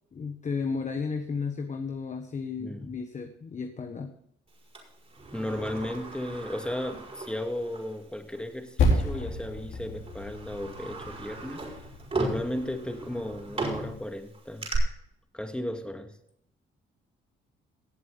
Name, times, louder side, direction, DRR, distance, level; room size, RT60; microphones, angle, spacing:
voice 1, 0.1-4.1, left 5 dB, 40° left, 6 dB, 1.2 m, -33 dB
voice 2, 2.6-2.9 5.3-11.6 12.1-14.7 15.3-16.1, left 1 dB, 5° left, 5 dB, 2.0 m, -35 dB
Sliding door, 4.7-8.0 8.3-8.4 9.4-9.6 10.0-14.8, right 2 dB, 30° right, 5.1 m, -37 dB
Percussion, 8.8-13.6, left 1 dB, 70° left, 4.0 m, -31 dB
18.0 x 7.7 x 3.9 m, 0.71 s
cardioid pair, 90°, 20 cm